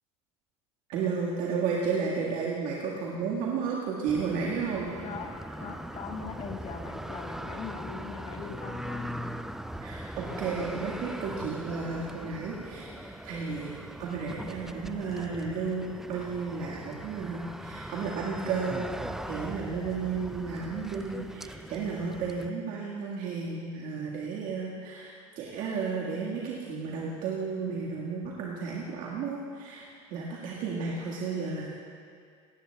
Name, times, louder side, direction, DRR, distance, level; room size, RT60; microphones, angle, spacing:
voice 1, 0.9-4.9 9.8-18.9 19.3-31.7, right 5 dB, 60° right, -4 dB, 1.8 m, -33 dB
sound 1, 4.1-22.5, right 1 dB, ahead, 0.4 m, -40 dB
voice 2, 5.0-9.1, left 5 dB, 40° left, 3 dB, 1.4 m, -41 dB
17.5 x 17.5 x 2.3 m, 2.3 s
hypercardioid pair, 85°, 16 cm